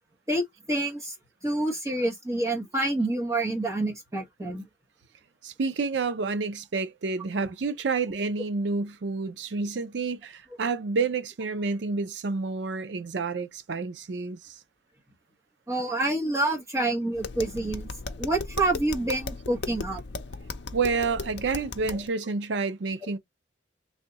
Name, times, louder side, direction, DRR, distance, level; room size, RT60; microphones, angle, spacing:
voice 1, 0.3-1.1 1.4-4.6 15.7-17.9 18.2-20.0 21.9-22.0, right 2 dB, 15° right, 1.2 m, -27 dB
voice 2, 5.4-14.5 20.7-23.2, right 4 dB, 70° right, 0.5 m, -29 dB
Tap, 17.1-22.1, left 4 dB, 65° left, 0.5 m, -37 dB
3.4 x 2.7 x 4.0 m
head